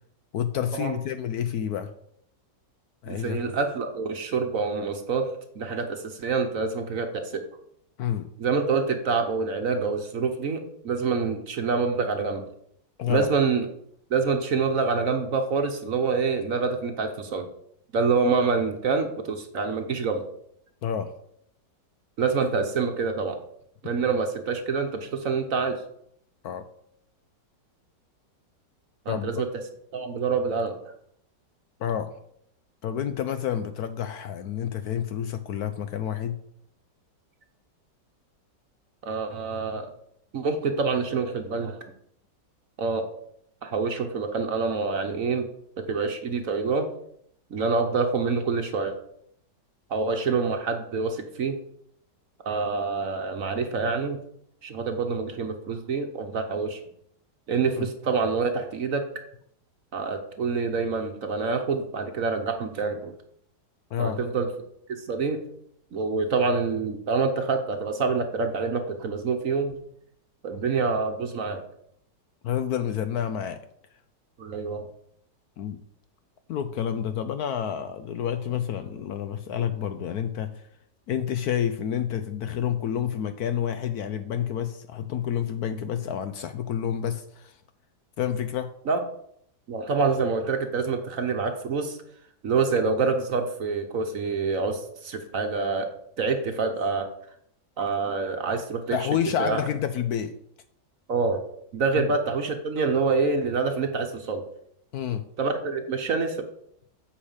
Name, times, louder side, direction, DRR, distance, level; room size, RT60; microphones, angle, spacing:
voice 1, 0.3-1.9 3.0-3.4 8.0-8.3 13.0-13.3 20.8-21.1 26.4-26.7 29.1-29.3 31.8-32.1 32.8-36.4 57.8-57.9 63.9-64.2 72.4-73.6 75.6-75.8 76.5-80.6 81.1-87.6 88.2-88.7 98.9-100.4 104.9-105.2, left 9 dB, 70° left, 10 dB, 1.0 m, -29 dB
voice 2, 3.1-7.4 8.4-12.4 13.1-13.7 14.1-17.5 17.9-20.2 22.2-23.4 23.8-25.8 29.0-29.5 29.9-30.8 39.0-39.9 40.3-41.8 42.8-43.0 43.6-45.5 45.8-46.9 47.5-48.9 49.9-51.6 52.4-54.2 54.6-56.8 57.5-59.1 59.9-63.1 64.0-64.5 64.9-65.4 65.9-69.8 70.4-71.6 74.4-74.9 88.9-89.0 89.7-92.0 92.4-95.9 96.2-97.1 97.8-99.0 99.4-99.6 101.1-101.4 101.7-104.4 105.4-106.5, right 4 dB, 55° right, 5 dB, 1.2 m, -26 dB
8.7 x 4.8 x 7.2 m, 0.70 s
omnidirectional pair, 2.0 m